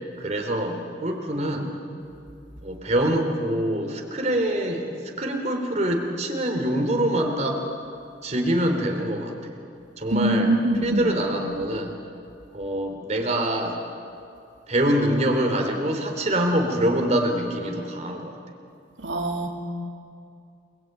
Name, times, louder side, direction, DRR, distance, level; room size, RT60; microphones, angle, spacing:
voice 1, 0.2-1.8 2.6-7.6 8.2-9.6 10.0-10.5 10.8-12.0 12.5-13.8 14.7-18.3, right 1 dB, 40° right, 2 dB, 3.5 m, -25 dB
voice 2, 10.1-11.1 19.0-19.5, right 1 dB, 90° right, 1 dB, 2.8 m, -23 dB
29.0 x 21.5 x 9.1 m, 2.5 s
head